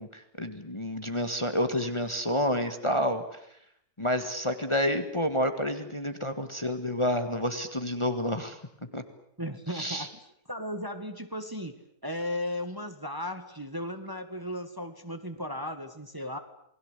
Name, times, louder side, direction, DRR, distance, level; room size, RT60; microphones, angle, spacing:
voice 1, 0.0-3.2 4.0-8.6 8.9-9.0 9.7-10.1, equal, 20° left, 8 dB, 1.8 m, -29 dB
voice 2, 9.4-10.2 10.5-11.7 12.0-16.4, left 1 dB, 15° right, 7 dB, 1.8 m, -35 dB
29.0 x 20.5 x 8.2 m, 0.69 s
omnidirectional pair, 1.6 m